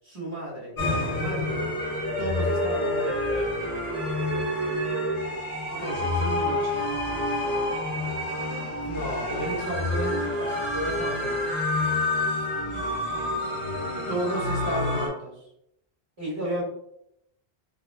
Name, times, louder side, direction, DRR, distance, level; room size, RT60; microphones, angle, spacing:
voice 1, 0.0-1.6 2.2-3.5 5.8-6.2 8.8-11.6 14.1-15.4 16.2-16.6, right 1 dB, 30° right, -9 dB, 1.4 m, -33 dB
sound 1, 0.8-15.1, left 1 dB, 40° left, 1.2 m, -28 dB
voice 2, 5.7-6.9 13.5-14.2, equal, 90° right, -3 dB, 1.5 m, -39 dB
5.2 x 2.4 x 2.2 m, 0.76 s
omnidirectional pair, 1.1 m